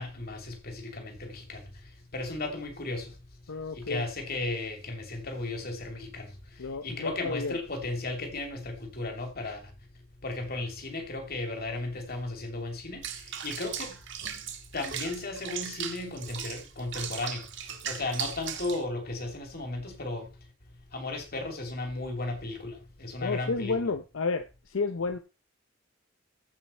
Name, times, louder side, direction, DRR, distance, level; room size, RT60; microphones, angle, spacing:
voice 1, 0.0-1.7 2.1-3.1 3.7-6.4 6.8-9.7 10.2-14.0 14.7-17.5 17.8-20.3 20.9-23.8, left 2 dB, 50° left, 2.7 m, -35 dB
voice 2, 3.5-4.0 6.6-7.6 23.2-25.2, left 4 dB, 80° left, 0.6 m, -31 dB
Water / Bathtub (filling or washing), 13.0-18.8, right 8 dB, 65° right, 1.5 m, -38 dB
14.5 x 5.6 x 4.3 m
head